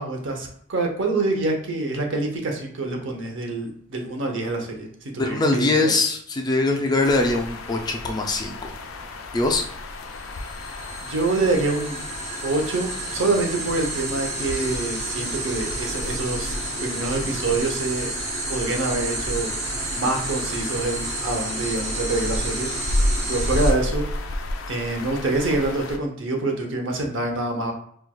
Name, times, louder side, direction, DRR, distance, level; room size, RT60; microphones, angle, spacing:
voice 1, 0.0-4.9 5.1-5.9 11.0-12.0 12.4-18.1 18.5-19.5 19.9-22.7 23.3-24.1 24.7-27.7, right 2 dB, 65° right, 2 dB, 0.7 m, -26 dB
voice 2, 5.2-8.8 9.3-9.6, left 2 dB, 20° left, 3 dB, 0.3 m, -22 dB
sound 1, 7.0-26.0, left 1 dB, 85° left, 0.4 m, -32 dB
sound 2, 10.1-23.7, right 2 dB, 35° right, 0.8 m, -31 dB
4.4 x 2.2 x 2.3 m, 0.65 s
head